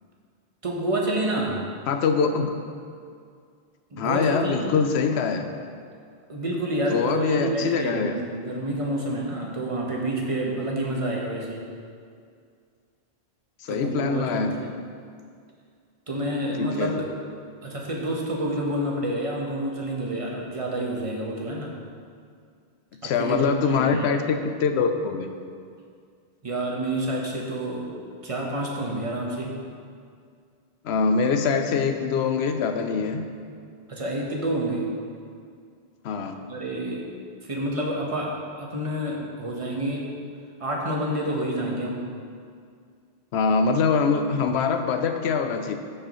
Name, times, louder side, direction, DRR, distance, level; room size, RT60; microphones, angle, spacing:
voice 1, 0.6-1.6 3.9-4.7 6.3-11.7 13.7-14.8 16.1-17.1 17.6-21.7 23.0-24.1 26.4-27.9 28.2-29.5 33.9-34.9 36.5-37.1 37.4-40.2 40.6-42.1, right 1 dB, 30° right, -2 dB, 1.1 m, -28 dB
voice 2, 1.9-2.6 4.0-5.5 6.9-8.2 13.6-14.7 16.6-16.9 23.0-25.3 30.8-33.2 36.0-36.4 43.3-45.7, left 5 dB, 80° left, 7 dB, 0.9 m, -24 dB
14.0 x 4.8 x 3.0 m, 2.2 s
omnidirectional pair, 1.1 m